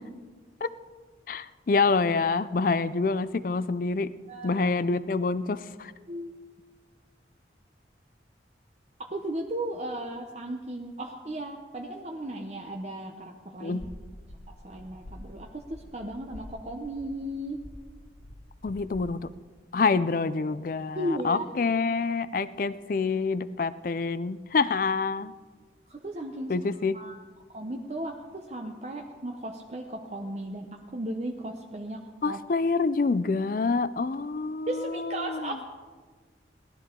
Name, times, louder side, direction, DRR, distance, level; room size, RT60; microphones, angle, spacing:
voice 1, 1.3-4.1 4.4-5.9 13.6-13.8 18.6-19.3 19.7-25.3 26.5-27.0 32.2-35.6, left 4 dB, 50° left, 15 dB, 0.4 m, -27 dB
voice 2, 4.3-4.7 6.1-6.3 9.0-13.8 14.5-17.6 20.9-21.4 25.9-26.5 26.9-27.2 27.5-32.0 32.2-32.4 34.6-35.6, right 1 dB, 35° right, 1 dB, 0.8 m, -35 dB
sound 1, 13.8-19.1, left 1 dB, 80° left, 1.3 m, -47 dB
18.0 x 12.0 x 3.8 m, 1.5 s
head